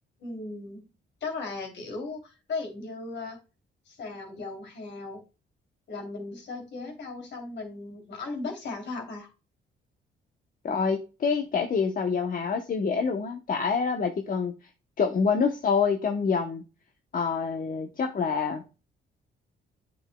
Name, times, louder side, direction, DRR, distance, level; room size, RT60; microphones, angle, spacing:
voice 1, 0.2-0.8 1.2-3.4 3.9-5.2 5.9-9.3, left 3 dB, 65° left, 3.1 m, -37 dB
voice 2, 10.6-14.5 15.0-16.6 17.1-18.6, left 5 dB, 45° left, 0.9 m, -26 dB
8.9 x 6.4 x 2.3 m
cardioid pair, 90°, 20 cm